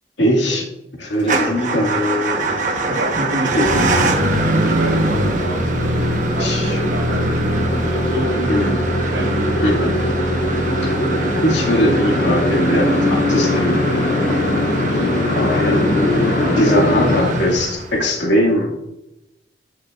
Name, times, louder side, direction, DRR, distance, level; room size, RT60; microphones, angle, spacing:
voice 1, 0.2-0.7 1.0-2.6 3.5-4.1 6.4-6.8 8.4-8.8 9.6-9.9 10.8-10.9 11.4-13.8 14.9-16.0 16.6-18.7, equal, 85° left, -2 dB, 2.1 m, -20 dB
Motor vehicle (road) / Engine starting / Idling, 1.2-18.2, right 1 dB, 45° right, 1.1 m, -22 dB
sound 1, 2.3-17.2, left 1 dB, 50° left, 0.8 m, -23 dB
voice 2, 2.8-8.8 9.1-10.1 14.3-15.1, right 1 dB, 70° right, -2 dB, 1.2 m, -28 dB
Brass instrument, 7.2-15.0, right 1 dB, 10° left, 0.7 m, -37 dB
14.5 x 6.5 x 2.4 m, 0.89 s
head